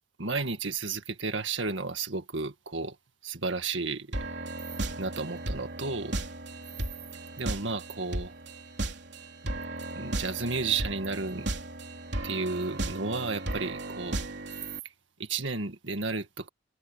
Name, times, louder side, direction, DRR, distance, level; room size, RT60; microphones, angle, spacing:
voice 1, 0.2-3.0 3.2-4.2 5.0-6.2 7.4-8.3 10.0-11.5 12.2-14.2 15.2-16.5, right 4 dB, 80° right, 1.9 m, -32 dB
sound 1, 4.1-14.8, right 1 dB, 65° right, 3.7 m, -35 dB
head